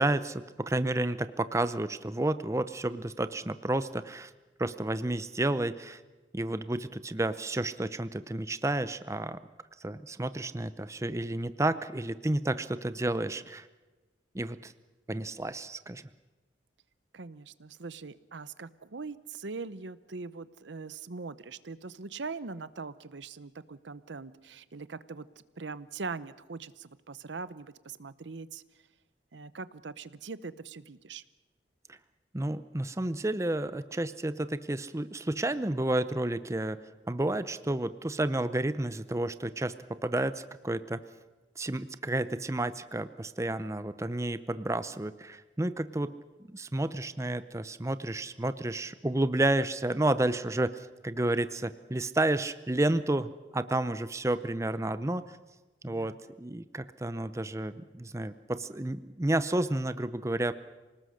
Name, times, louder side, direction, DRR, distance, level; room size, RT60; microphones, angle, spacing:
voice 1, 0.0-4.3 4.6-6.0 6.3-9.4 9.8-13.7 14.3-14.7 15.1-16.0 31.9-32.0 32.3-36.8 37.1-41.0 41.6-46.1 46.5-55.4 55.8-60.5, right 1 dB, 15° right, 13 dB, 0.6 m, -31 dB
voice 2, 17.1-25.3 25.6-28.6 29.3-31.2 55.8-56.2, right 4 dB, 80° right, 16 dB, 0.8 m, -41 dB
26.5 x 19.0 x 6.5 m, 1.2 s
head